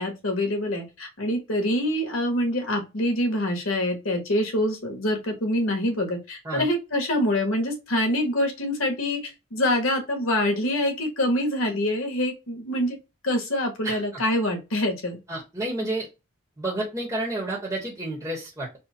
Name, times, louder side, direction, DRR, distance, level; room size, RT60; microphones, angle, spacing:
voice 1, 0.0-13.0 13.2-15.2, left 1 dB, 85° left, 4 dB, 1.3 m, -25 dB
voice 2, 13.8-14.2 15.3-16.1 16.6-18.8, right 1 dB, 15° right, -3 dB, 0.9 m, -30 dB
4.2 x 2.1 x 3.8 m, 0.27 s
head